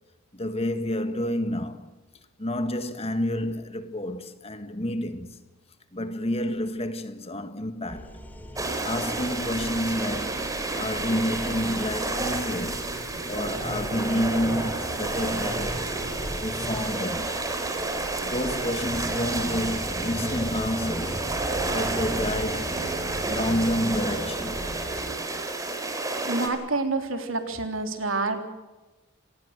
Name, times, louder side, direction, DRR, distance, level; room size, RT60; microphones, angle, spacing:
voice 1, 0.3-1.9 2.4-5.4 5.9-8.2 8.8-10.4 10.7-12.8 13.3-15.8 16.3-17.3 18.2-21.3 21.7-22.8 23.2-24.6, left 1 dB, 30° left, 1.8 m, -29 dB
sound 1, 7.8-25.1, equal, 10° left, 3.0 m, -38 dB
sound 2, 8.6-26.5, right 2 dB, 15° right, 4.0 m, -30 dB
voice 2, 26.3-28.4, right 3 dB, 80° right, 3.4 m, -28 dB
26.5 x 20.0 x 6.6 m
head